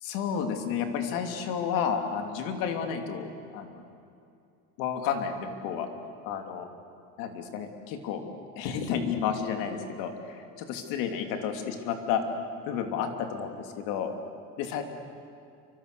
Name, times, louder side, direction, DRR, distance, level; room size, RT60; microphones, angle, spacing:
voice 1, 0.0-3.8 4.8-5.9 6.2-6.7 7.2-8.2 8.6-12.2 12.7-14.1 14.6-14.8, left 7 dB, 85° left, 5 dB, 2.9 m, -31 dB
29.5 x 25.5 x 6.8 m, 2.5 s
cardioid pair, 145°, 32 cm